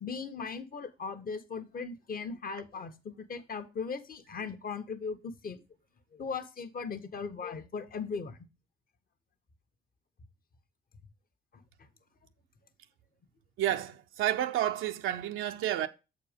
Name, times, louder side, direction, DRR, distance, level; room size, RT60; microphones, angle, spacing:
voice 1, 0.0-5.6 6.1-8.5 11.8-11.9, left 5 dB, 45° left, 1.2 m, -38 dB
voice 2, 13.6-15.9, right 12 dB, 85° right, 0.6 m, -30 dB
7.2 x 4.4 x 5.1 m
cardioid pair, 90°, 20 cm